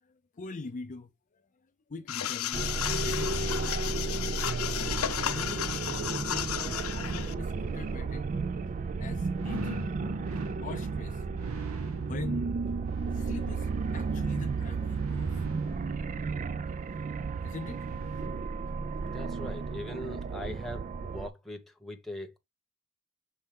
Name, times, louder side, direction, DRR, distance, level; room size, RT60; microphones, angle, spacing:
voice 1, 0.0-2.7 3.0-4.3 5.1-8.3 9.0-10.0 10.4-11.2 12.1-12.6 13.1-15.7 16.2-16.3 17.4-17.9 18.1-18.2 18.9-19.2, left 3 dB, 35° left, 0.5 m, -44 dB
sound 1, 2.1-7.3, left 10 dB, 80° left, 0.7 m, -33 dB
sound 2, 2.5-21.3, right 4 dB, 35° right, 0.3 m, -33 dB
sound 3, 5.0-18.8 19.3-19.4, right 2 dB, 70° right, 1.0 m, -44 dB
voice 2, 19.1-22.4, left 1 dB, ahead, 1.0 m, -41 dB
6.4 x 4.1 x 3.6 m
head